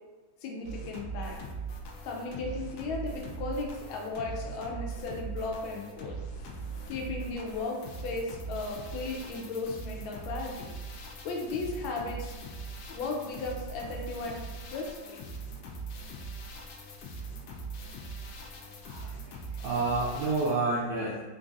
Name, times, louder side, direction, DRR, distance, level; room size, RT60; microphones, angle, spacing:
voice 1, 0.4-1.4 2.0-6.2 6.9-7.8 8.0-10.7 11.2-12.3 12.9-14.4 14.7-15.2, left 3 dB, 90° left, 0 dB, 1.4 m, -35 dB
sound 1, 0.6-20.5, right 3 dB, 75° left, 1.1 m, -41 dB
voice 2, 18.5-21.2, right 3 dB, 80° right, -5 dB, 0.8 m, -30 dB
3.8 x 2.6 x 2.5 m, 1.3 s
omnidirectional pair, 2.1 m